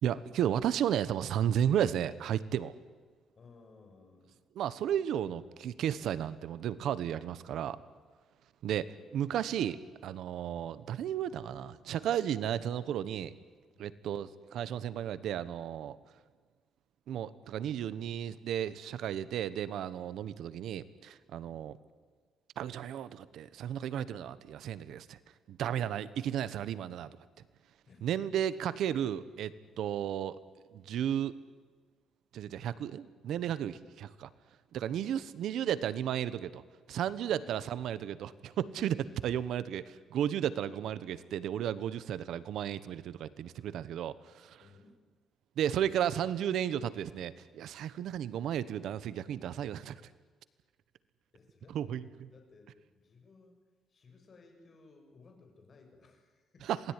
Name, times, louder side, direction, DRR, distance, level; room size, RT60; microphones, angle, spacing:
voice 1, 0.0-2.7 4.5-7.8 8.6-13.3 13.8-16.0 17.1-21.8 22.6-25.2 25.5-27.1 28.0-30.4 30.7-31.4 32.3-34.3 34.7-36.6 36.9-44.6 45.6-50.0 51.7-52.1 56.6-56.8, right 10 dB, 70° right, 15 dB, 1.2 m, -33 dB
voice 2, 3.3-4.4 13.7-13.9 20.0-20.2 21.4-21.6 27.9-28.1 28.5-28.6 29.7-29.9 34.9-35.2 37.3-37.7 38.9-39.3 44.6-45.0 51.3-53.6 53.9-56.8, left 4 dB, 35° left, 4 dB, 6.9 m, -59 dB
27.0 x 20.0 x 10.0 m, 1.4 s
cardioid pair, 130°, 0 cm